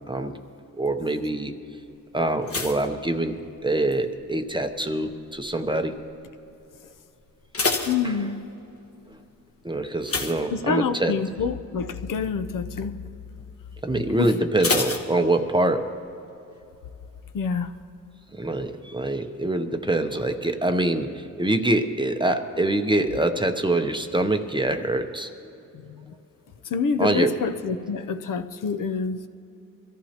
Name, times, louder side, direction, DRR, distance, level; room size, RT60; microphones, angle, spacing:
voice 1, 0.7-1.5 2.1-6.0 8.0-8.1 9.6-11.2 13.8-16.0 18.3-25.3 27.0-27.3, right 2 dB, 15° right, 6 dB, 0.6 m, -25 dB
sound 1, 2.4-3.9 4.2-4.7 5.3-5.7 6.0-6.1 6.5-6.6 7.2-8.7 10.0-11.2 11.5-11.8 12.2-12.3 14.6-15.8 16.1-16.2, left 3 dB, 40° left, 1.2 m, -29 dB
voice 2, 7.9-8.4 10.5-13.0 14.2-14.3 17.3-17.7 25.7-26.1 26.6-29.3, left 5 dB, 65° left, 9 dB, 0.7 m, -27 dB
24.0 x 14.5 x 2.9 m, 2.9 s
wide cardioid pair, 130°, 35 cm